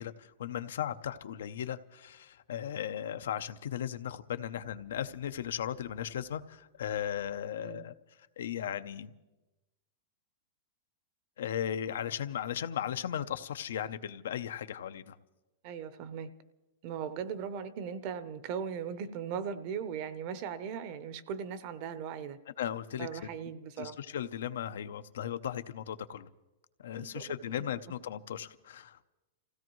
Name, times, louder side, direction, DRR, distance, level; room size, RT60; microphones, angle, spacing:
voice 1, 0.0-7.9 8.4-9.1 11.4-15.2 22.6-23.2 23.8-26.3 26.8-29.0, left 9 dB, 85° left, 11 dB, 0.6 m, -36 dB
voice 2, 15.6-16.3 16.8-22.4 23.0-23.9 27.0-27.2, right 7 dB, 40° right, 13 dB, 0.7 m, -38 dB
28.5 x 16.5 x 3.1 m, 1.1 s
supercardioid pair, 170°, 0 cm